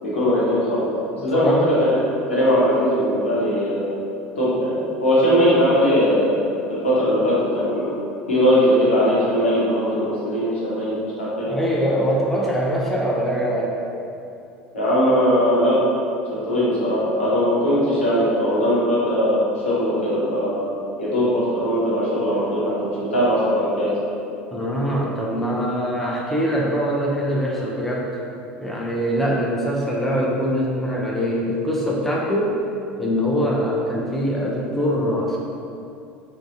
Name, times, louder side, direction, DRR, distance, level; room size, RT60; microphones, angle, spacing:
voice 1, 0.0-0.9 1.2-2.0 2.3-3.9 4.4-6.3 6.7-8.0 8.3-11.5 14.7-15.8 16.4-19.4 19.6-20.6 21.0-23.9, equal, 80° left, -9 dB, 0.9 m, -20 dB
voice 2, 1.2-1.7 11.4-13.8 24.5-28.1 28.6-32.6 33.0-35.4, equal, 5° left, -5 dB, 0.5 m, -23 dB
3.4 x 2.1 x 2.6 m, 2.6 s
figure-of-eight pair, 70°, 6 cm